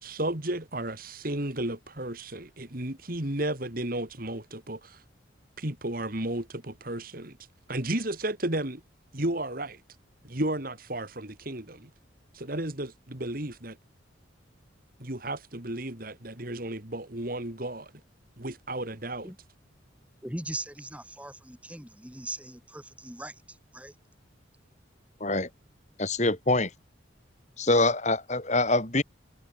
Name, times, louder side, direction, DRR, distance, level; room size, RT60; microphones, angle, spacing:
voice 1, 0.0-5.0 5.6-7.4 7.7-8.8 9.1-9.8 10.2-11.9 12.3-13.8 15.0-17.9 18.4-19.3, right 1 dB, 45° right, 2.8 m, -33 dB
voice 2, 20.2-23.3 23.7-23.9, right 1 dB, 5° right, 3.4 m, -39 dB
voice 3, 26.0-26.7 27.6-29.0, left 2 dB, 35° left, 3.6 m, -24 dB
head